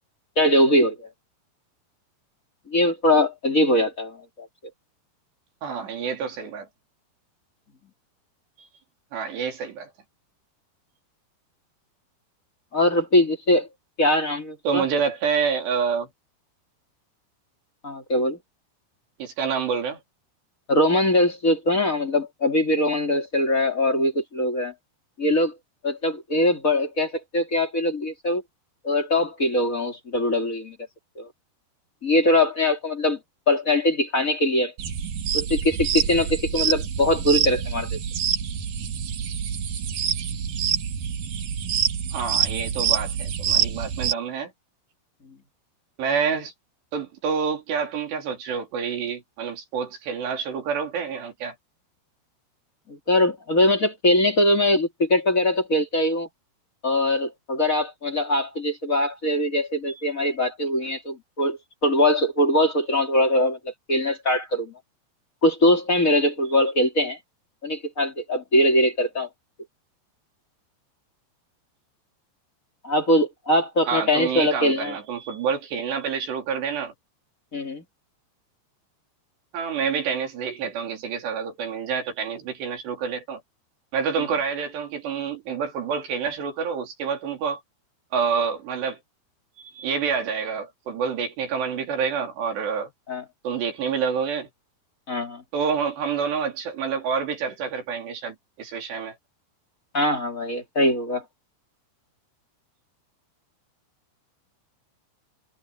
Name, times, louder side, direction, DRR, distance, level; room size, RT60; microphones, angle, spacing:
voice 1, 0.4-1.1 2.7-4.5 12.7-13.7 14.0-14.8 17.8-18.4 20.7-24.7 25.2-25.5 25.8-28.4 28.8-30.8 31.2-31.3 32.0-33.2 33.5-34.7 35.3-38.0 52.9-56.3 56.8-64.7 65.4-67.2 67.6-69.3 72.8-74.9 77.5-77.8 93.1-93.2 95.1-95.4 99.9-101.2, left 1 dB, 20° left, 2.9 m, -22 dB
voice 2, 5.6-6.7 8.6-8.7 9.1-9.9 14.7-16.1 19.2-20.0 42.1-44.5 46.0-46.5 46.9-51.6 60.9-61.0 73.9-76.9 79.5-83.4 83.9-87.6 88.1-89.0 89.6-92.9 93.4-94.5 95.5-99.2, right 6 dB, 90° right, 6.0 m, -28 dB
sound 1, 34.8-44.1, right 9 dB, 60° right, 3.3 m, -26 dB
omnidirectional pair, 4.7 m